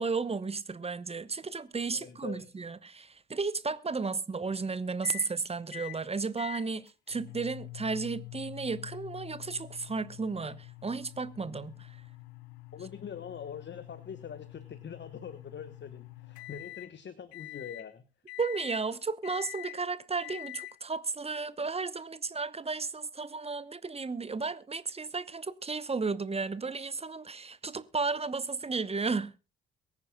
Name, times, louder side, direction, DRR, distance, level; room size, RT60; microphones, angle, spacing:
voice 1, 0.0-12.0 18.4-29.3, right 4 dB, 20° right, 1.0 m, -34 dB
voice 2, 1.9-2.5 12.7-18.0, left 7 dB, 35° left, 1.2 m, -43 dB
sound 1, 5.0-5.3 5.7-6.0 6.4-16.9 17.3-17.9 18.3-18.8 19.2-19.8 20.2-20.7, left 20 dB, 75° left, 0.7 m, -46 dB
23.0 x 9.9 x 2.3 m
figure-of-eight pair, 50°, 31 cm